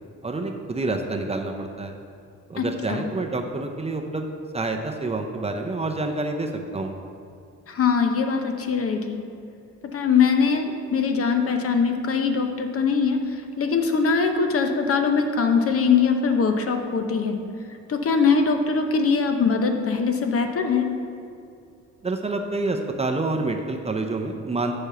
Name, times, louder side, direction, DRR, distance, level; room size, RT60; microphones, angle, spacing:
voice 1, 0.2-1.9 2.5-4.3 4.5-7.0 22.0-24.7, right 2 dB, 20° right, 3 dB, 0.6 m, -28 dB
voice 2, 2.6-3.1 7.7-9.2 9.9-13.2 13.6-17.4 17.9-20.8, left 5 dB, 50° left, 5 dB, 0.8 m, -22 dB
6.8 x 4.4 x 6.7 m, 2.5 s
cardioid pair, 90°, 30 cm